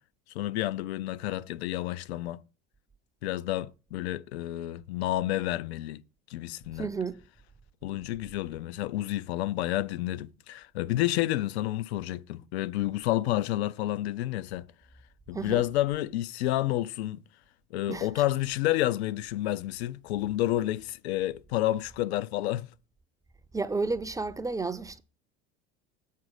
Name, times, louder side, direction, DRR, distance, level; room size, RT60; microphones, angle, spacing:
voice 1, 0.3-2.4 3.2-6.0 6.3-6.9 7.8-14.7 15.3-17.2 17.7-22.7, left 15 dB, 90° left, 0.5 m, -30 dB
voice 2, 6.7-7.2 15.3-15.6 17.9-18.1 23.5-25.0, right 3 dB, 10° right, 0.5 m, -32 dB
7.4 x 4.0 x 6.5 m
supercardioid pair, 105°, 31 cm